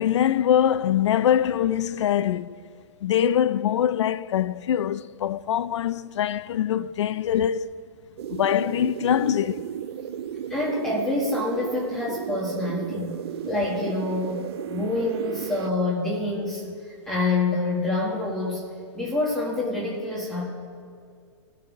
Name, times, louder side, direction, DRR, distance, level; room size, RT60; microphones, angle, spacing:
voice 1, 0.0-2.6 3.0-7.8 8.3-9.6, left 10 dB, 75° left, 0.5 m, -23 dB
sound 1, 8.2-15.7, right 9 dB, 60° right, 0.5 m, -34 dB
voice 2, 10.5-13.2 13.5-14.4 14.7-18.6 18.9-20.5, left 2 dB, 5° left, 1.5 m, -27 dB
15.5 x 5.5 x 6.0 m
hypercardioid pair, 150°, 15 cm